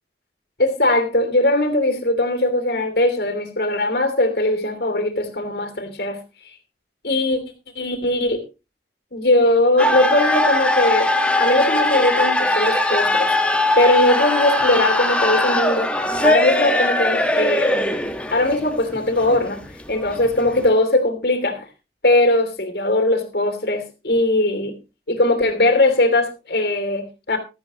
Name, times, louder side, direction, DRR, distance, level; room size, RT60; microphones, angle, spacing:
voice 1, 0.6-6.2 7.0-7.4 7.7-8.4 9.1-11.1 11.4-13.3 13.8-15.9 16.2-18.0 18.3-19.6 19.9-21.7 22.0-24.8 25.1-27.4, left 1 dB, 60° left, 8 dB, 2.9 m, -20 dB
sound 1, 9.8-20.7, left 1 dB, 5° left, 1.4 m, -20 dB
15.5 x 13.0 x 3.0 m, 0.28 s
head